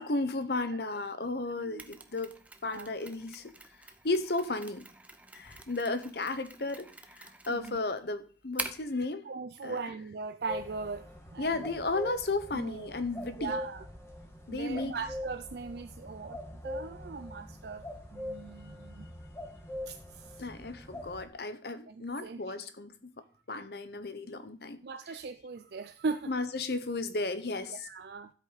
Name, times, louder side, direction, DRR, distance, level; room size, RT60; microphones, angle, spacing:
voice 1, 0.0-3.5 4.0-4.8 5.3-9.2 9.6-9.8 11.4-13.6 14.5-14.9 20.4-22.9 23.5-24.8 26.3-27.9, left 2 dB, 60° left, 11 dB, 1.0 m, -34 dB
Mechanisms, 1.8-9.0, right 3 dB, 10° right, 0.7 m, -45 dB
voice 2, 9.2-11.7 12.5-12.9 13.4-13.8 14.5-16.4 16.6-17.8 18.1-19.1 19.9-20.4 21.9-22.5 24.8-26.3 27.7-28.3, right 4 dB, 60° right, 9 dB, 0.5 m, -39 dB
sound 1, 10.5-21.2, left 1 dB, 15° left, 1.7 m, -43 dB
12.5 x 8.0 x 4.0 m, 0.43 s
head